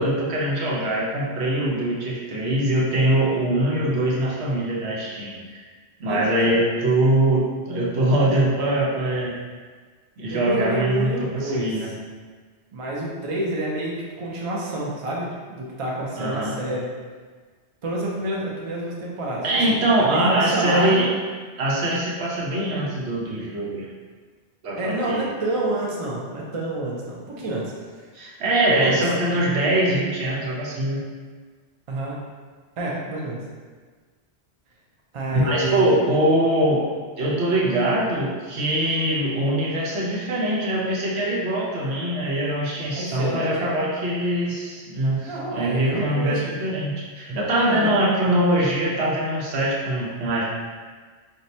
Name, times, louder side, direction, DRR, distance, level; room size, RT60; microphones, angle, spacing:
voice 1, 0.0-5.4 6.0-9.3 10.2-11.9 16.2-16.5 19.4-21.1 21.6-23.9 24.6-25.3 28.1-31.0 35.3-36.9 37.2-50.5, right 1 dB, 75° right, -4 dB, 1.0 m, -23 dB
voice 2, 6.0-6.6 10.3-11.8 12.7-16.9 17.8-19.6 20.0-21.0 24.8-27.7 28.7-29.0 31.9-32.2 32.8-33.4 35.1-36.0 43.0-43.5 45.3-46.5 47.7-48.0, right 1 dB, 40° right, -4 dB, 0.5 m, -28 dB
2.7 x 2.2 x 4.1 m, 1.5 s
omnidirectional pair, 1.1 m